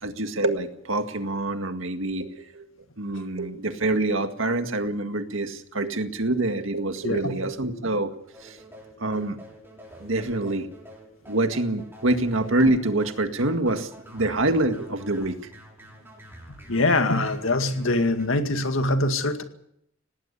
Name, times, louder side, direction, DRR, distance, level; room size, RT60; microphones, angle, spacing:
voice 1, 0.0-2.7 3.0-8.6 9.0-9.4 10.0-10.7 11.3-15.4, right 2 dB, 85° right, 7 dB, 2.0 m, -26 dB
sound 1, 8.3-18.3, equal, 10° right, 6.6 m, -48 dB
voice 2, 16.7-19.4, left 2 dB, 90° left, 7 dB, 2.1 m, -23 dB
18.5 x 18.5 x 8.4 m, 0.75 s
head